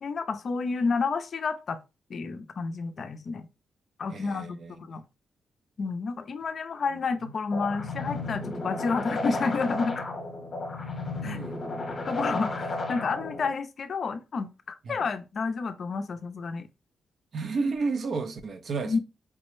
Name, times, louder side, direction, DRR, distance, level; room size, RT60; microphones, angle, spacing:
voice 1, 0.0-1.8 2.1-3.5 4.0-5.0 5.8-10.0 11.2-11.4 12.1-16.7 18.8-19.0, left 4 dB, 45° left, 0.4 m, -30 dB
voice 2, 4.1-5.0 7.2-7.3 11.2-11.6 14.8-15.0 17.3-19.0, right 4 dB, 50° right, 0.4 m, -32 dB
sound 1, 7.5-13.5, left 2 dB, 30° left, 0.8 m, -33 dB
4.6 x 2.0 x 3.0 m
wide cardioid pair, 140°, 0 cm